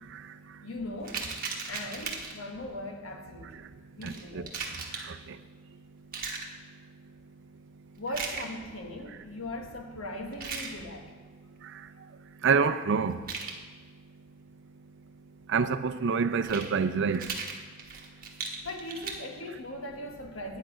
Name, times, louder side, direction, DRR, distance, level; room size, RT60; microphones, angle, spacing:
voice 1, 0.6-1.3 1.7-3.7 3.9-4.5 8.0-11.1 18.6-20.6, left 1 dB, 85° left, 3 dB, 1.4 m, -39 dB
sound 1, 1.0-2.5 4.0-5.1 6.1-6.5 8.1-8.5 10.3-10.7 13.1-13.5 16.3-16.7 17.1-19.1, right 5 dB, 45° right, 1.2 m, -37 dB
voice 2, 4.0-4.5 4.9-5.2 12.4-13.2 15.5-17.3, right 5 dB, 65° right, 11 dB, 0.5 m, -27 dB
9.1 x 8.5 x 5.0 m, 1.4 s
head